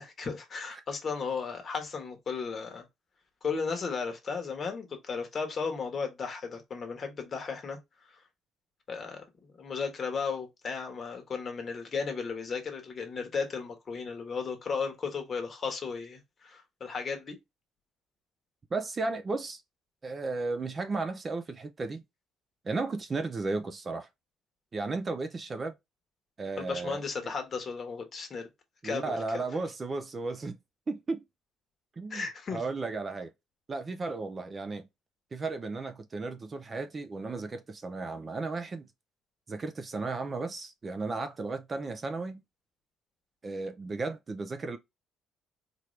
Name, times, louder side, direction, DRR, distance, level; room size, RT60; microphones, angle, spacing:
voice 1, 0.0-2.8 3.4-7.8 8.1-8.2 8.9-17.4 26.6-28.5 28.8-29.4 32.1-32.6, left 5 dB, 35° left, 1.2 m, -35 dB
voice 2, 18.7-19.6 20.0-22.0 22.6-24.1 24.7-25.7 26.4-27.3 28.8-30.6 30.9-31.2 32.0-33.3 33.7-34.9 35.3-38.9 39.5-42.4 43.4-44.8, right 3 dB, 25° right, 0.5 m, -34 dB
4.4 x 2.6 x 3.1 m
cardioid pair, 145°, 0 cm